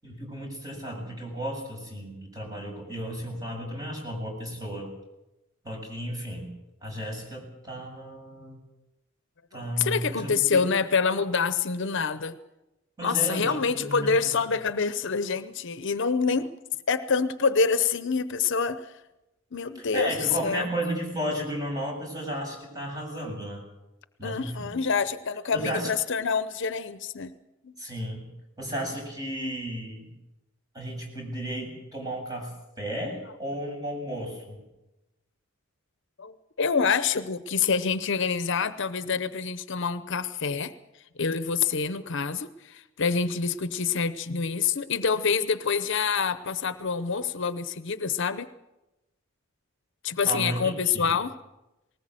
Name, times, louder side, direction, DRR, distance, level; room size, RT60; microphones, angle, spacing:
voice 1, 0.0-4.9 5.6-6.5 6.8-8.6 9.5-10.7 13.0-14.3 19.7-23.6 24.2-24.7 25.5-25.9 27.8-28.3 28.6-30.1 30.7-32.5 32.8-34.6 50.3-51.1, right 1 dB, 20° right, 0 dB, 7.2 m, -34 dB
voice 2, 9.5-12.4 13.0-16.5 16.9-18.9 19.5-20.1 20.4-20.7 24.2-27.3 27.6-27.7 36.2-40.7 41.2-48.5 50.0-51.3, left 5 dB, 60° left, 13 dB, 0.8 m, -26 dB
20.0 x 19.0 x 7.7 m, 0.99 s
head